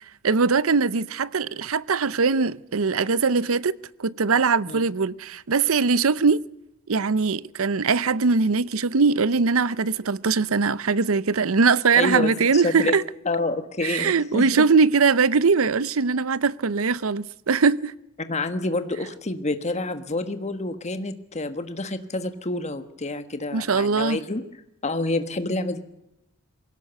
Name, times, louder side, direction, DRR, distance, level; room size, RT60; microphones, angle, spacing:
voice 1, 0.2-6.4 6.9-13.0 13.8-17.9 23.5-24.2, right 4 dB, 75° right, 0.7 m, -21 dB
voice 2, 11.9-12.9 13.2-14.6 18.3-24.4 24.8-25.8, left 2 dB, 30° left, 1.4 m, -28 dB
21.5 x 17.5 x 8.1 m
head